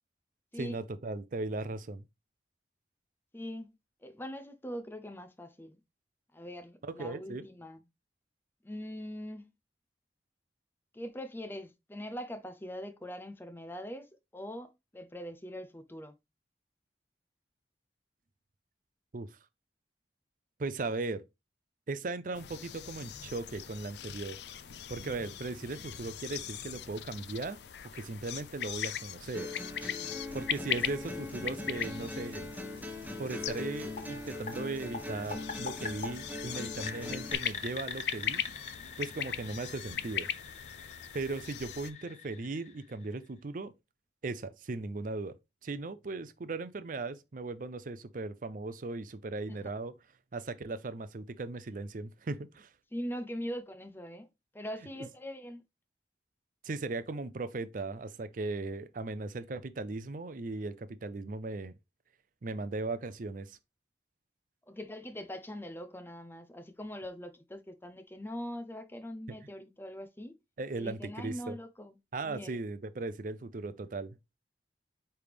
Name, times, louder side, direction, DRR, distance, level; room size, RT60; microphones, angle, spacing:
voice 1, 0.5-2.0 6.8-7.4 19.1-19.4 20.6-21.2 21.9-24.4 24.9-27.6 27.9-29.5 30.3-32.5 33.2-38.4 39.0-40.3 41.1-43.7 44.2-45.4 45.6-50.0 50.3-52.7 56.6-61.7 62.4-63.6 70.6-71.6 72.1-74.2, right 3 dB, 50° right, 0.5 m, -38 dB
voice 2, 3.3-3.7 4.0-5.8 6.3-7.8 8.6-9.5 10.9-16.2 49.5-49.6 52.9-54.3 54.5-55.6 64.7-70.3 70.8-72.0 72.2-72.6, equal, 10° left, 0.6 m, -42 dB
sound 1, 22.3-41.9, left 9 dB, 75° left, 0.5 m, -40 dB
sound 2, 29.3-37.3, left 2 dB, 10° right, 1.4 m, -41 dB
sound 3, 33.5-43.3, left 5 dB, 40° left, 0.8 m, -45 dB
8.7 x 3.4 x 3.4 m
head